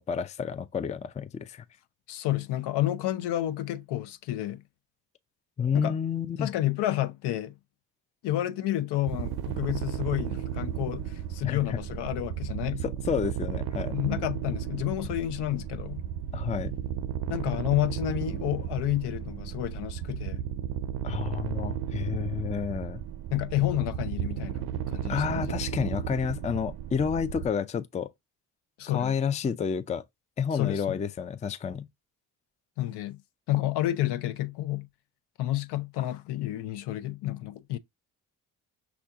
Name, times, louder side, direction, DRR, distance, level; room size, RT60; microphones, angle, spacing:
voice 1, 0.0-1.6 5.6-6.5 11.4-11.8 12.8-14.0 16.3-16.8 21.0-23.0 25.1-28.1 28.9-30.0 30.4-31.9, left 7 dB, 15° left, 0.4 m, -30 dB
voice 2, 2.1-4.6 5.7-6.0 6.4-7.5 8.2-12.8 13.9-16.0 17.3-20.4 23.3-25.7 28.8-29.1 30.5-31.1 32.8-33.2 33.5-34.9 35.4-37.8, left 14 dB, 60° left, 0.6 m, -30 dB
sound 1, 9.1-27.5, right 10 dB, 55° right, 0.6 m, -34 dB
5.9 x 2.4 x 3.5 m
hypercardioid pair, 45°, 46 cm